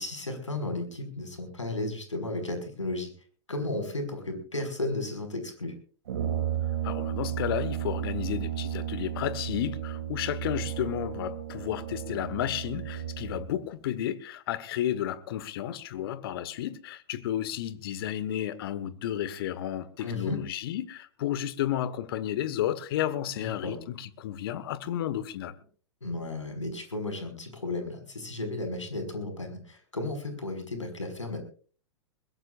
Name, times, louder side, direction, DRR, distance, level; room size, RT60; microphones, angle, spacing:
voice 1, 0.0-3.1 3.5-5.7 20.0-20.4 23.4-23.7 26.0-31.4, left 2 dB, 80° left, 5.7 m, -34 dB
Brass instrument, 6.1-13.5, right 10 dB, 60° right, 3.0 m, -33 dB
voice 2, 6.8-25.5, left 11 dB, 50° left, 1.5 m, -32 dB
21.5 x 21.5 x 2.5 m
figure-of-eight pair, 100°, 15 cm